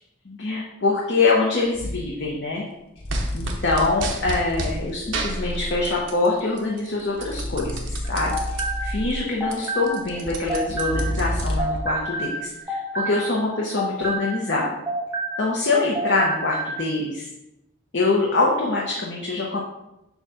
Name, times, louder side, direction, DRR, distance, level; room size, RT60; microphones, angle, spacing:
voice 1, 0.2-2.6 3.3-8.6 8.8-14.7 15.4-17.3 17.9-19.6, left 3 dB, 65° left, -3 dB, 0.9 m, -24 dB
sound 1, 1.7-2.1 3.0-6.0 7.2-9.4 10.8-11.9, equal, 30° left, 0.5 m, -30 dB
sound 2, 3.1-4.8 5.1-6.3 6.6-8.6 9.1-9.2 9.4-11.8, right 3 dB, 75° right, 0.9 m, -31 dB
sound 3, 8.0-11.3 11.6-15.7 15.9-16.8, right 1 dB, 15° right, 0.8 m, -30 dB
7.1 x 2.4 x 5.5 m, 0.90 s
head